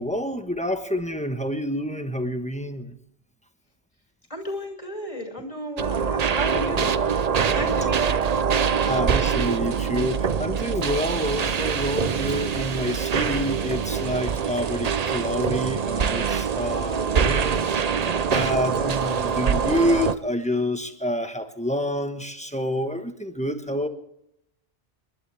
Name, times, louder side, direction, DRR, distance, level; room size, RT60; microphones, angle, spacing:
voice 1, 0.0-2.9 6.5-6.9 7.5-7.8 8.8-17.7 18.3-23.9, equal, 5° left, 7 dB, 1.1 m, -28 dB
voice 2, 4.3-7.1 7.4-8.2, equal, 30° left, 2 dB, 2.8 m, -34 dB
sound 1, 5.8-20.1, right 6 dB, 45° right, 0.6 m, -24 dB
29.0 x 11.5 x 3.4 m, 0.80 s
omnidirectional pair, 1.1 m